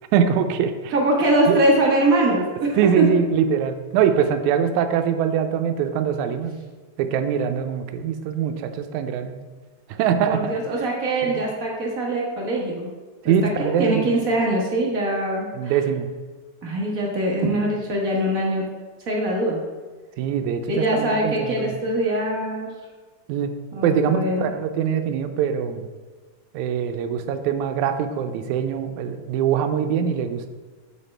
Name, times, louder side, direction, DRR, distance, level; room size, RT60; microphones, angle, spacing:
voice 1, 0.1-0.9 1.5-1.6 2.8-6.6 7.0-9.4 9.9-10.9 11.2-11.4 13.2-14.1 15.5-16.1 20.2-21.7 23.3-23.5 23.8-25.9 26.5-30.5, right 8 dB, 80° right, 8 dB, 2.0 m, -23 dB
voice 2, 0.9-3.0 10.3-12.9 13.2-15.7 16.6-18.6 19.1-19.6 20.7-22.7 23.7-24.5, right 1 dB, 50° right, -3 dB, 1.0 m, -22 dB
8.1 x 7.3 x 3.3 m, 1.3 s
omnidirectional pair, 3.4 m